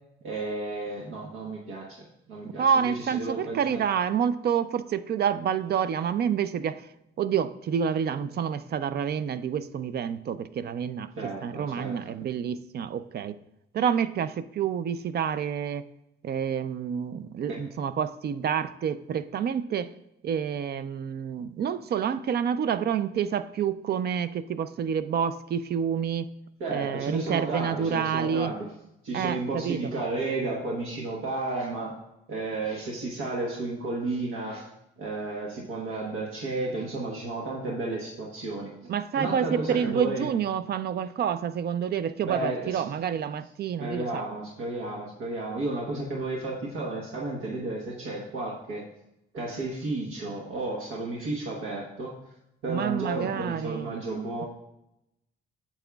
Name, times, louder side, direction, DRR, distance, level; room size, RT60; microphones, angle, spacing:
voice 1, 0.2-1.9 2.3-3.8 11.2-12.1 17.5-17.6 26.6-28.6 29.0-31.9 32.3-34.6 35.0-38.9 39.2-40.3 42.2-42.8 43.8-48.8 49.3-52.1 52.6-54.5, right 2 dB, 90° right, -3 dB, 1.2 m, -32 dB
voice 2, 2.4-6.9 7.2-13.4 13.7-15.8 16.2-19.9 20.2-26.3 26.7-28.5 29.1-29.9 38.9-44.3 52.7-53.9, right 8 dB, 55° right, 13 dB, 0.5 m, -28 dB
8.8 x 7.2 x 2.3 m, 0.84 s
cardioid pair, 90°, 20 cm